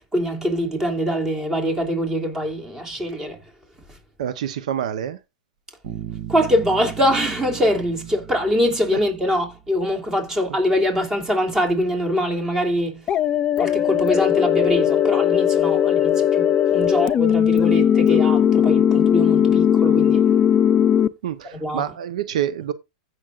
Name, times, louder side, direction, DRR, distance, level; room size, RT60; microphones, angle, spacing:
voice 1, 0.1-3.4 6.3-13.0 13.6-20.3 21.6-21.9, equal, 15° right, 3.0 m, -23 dB
voice 2, 4.2-5.2 21.2-22.7, right 10 dB, 75° right, 0.8 m, -27 dB
Bass guitar, 5.8-9.5, right 11 dB, 60° right, 2.2 m, -37 dB
sound 1, 13.1-21.1, left 9 dB, 25° left, 0.6 m, -18 dB
15.0 x 6.4 x 2.5 m
hypercardioid pair, 130°, 4 cm